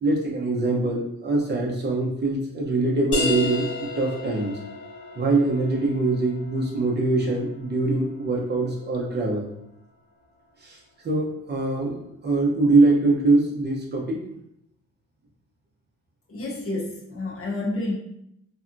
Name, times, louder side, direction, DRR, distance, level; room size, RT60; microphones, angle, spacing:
voice 1, 0.0-3.7 4.0-4.5 5.2-9.5 10.6-10.8 11.0-14.2, right 2 dB, 35° right, -2 dB, 0.6 m, -23 dB
sound 1, 3.1-8.5, left 2 dB, 70° left, 0.9 m, -33 dB
voice 2, 16.3-18.0, left 2 dB, 45° left, -2 dB, 0.8 m, -29 dB
2.7 x 2.2 x 2.5 m, 0.77 s
cardioid pair, 90°, 30 cm